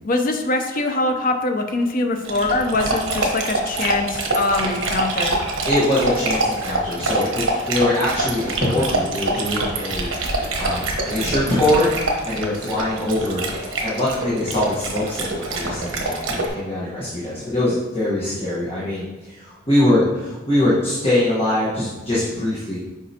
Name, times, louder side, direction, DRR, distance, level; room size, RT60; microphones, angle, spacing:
voice 1, 0.0-5.4, left 2 dB, 45° left, 5 dB, 0.6 m, -23 dB
Dog, 2.2-16.5, right 2 dB, 80° right, 1.1 m, -25 dB
voice 2, 5.7-19.0 19.3-22.8, left 1 dB, 30° left, -9 dB, 1.3 m, -23 dB
7.3 x 4.8 x 2.9 m, 1.2 s
head